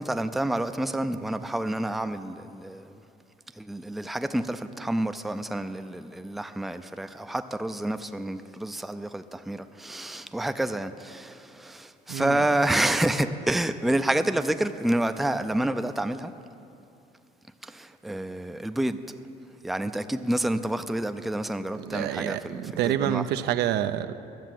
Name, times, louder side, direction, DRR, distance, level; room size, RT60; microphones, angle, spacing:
voice 1, 0.0-2.9 3.6-16.3 17.6-19.0 19.6-23.2, right 1 dB, ahead, 9 dB, 0.4 m, -28 dB
voice 2, 12.1-12.4 21.7-24.1, right 11 dB, 80° right, 11 dB, 0.5 m, -28 dB
12.0 x 7.2 x 7.6 m, 2.7 s
cardioid pair, 110°, 17 cm